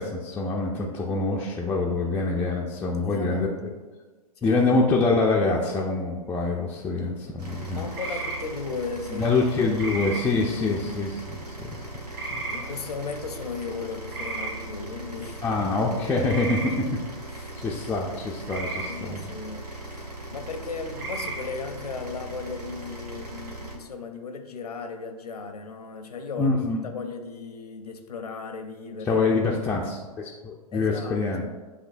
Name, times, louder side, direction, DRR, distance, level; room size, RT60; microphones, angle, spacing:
voice 1, 0.0-3.7 4.4-7.9 9.1-11.8 12.3-12.5 15.4-16.9 17.6-19.3 26.4-26.9 29.0-31.4, left 3 dB, 10° left, -4 dB, 0.3 m, -25 dB
voice 2, 2.9-3.8 4.4-4.6 7.7-9.8 10.3-10.7 12.5-15.4 16.6-16.9 17.3-17.6 18.9-29.2 30.7-31.5, left 4 dB, 80° left, 6 dB, 0.6 m, -36 dB
sound 1, 7.4-23.8, right 2 dB, 90° right, 0.9 m, -39 dB
sound 2, 7.9-8.4 9.8-10.2 12.1-12.6 14.1-14.5 16.3-16.7 18.5-18.9 20.9-21.4, right 3 dB, 40° right, 1.4 m, -33 dB
7.8 x 2.7 x 2.5 m, 1.3 s
figure-of-eight pair, 105°, 20 cm